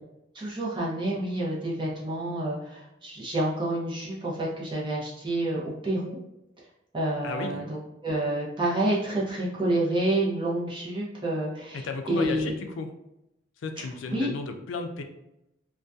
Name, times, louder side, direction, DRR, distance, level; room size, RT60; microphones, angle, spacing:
voice 1, 0.3-6.2 6.9-12.5 14.1-14.3, right 1 dB, 25° right, -5 dB, 0.6 m, -28 dB
voice 2, 7.2-7.6 11.7-12.9 13.6-15.0, left 3 dB, 90° left, 6 dB, 0.4 m, -34 dB
2.6 x 2.2 x 2.3 m, 0.88 s
head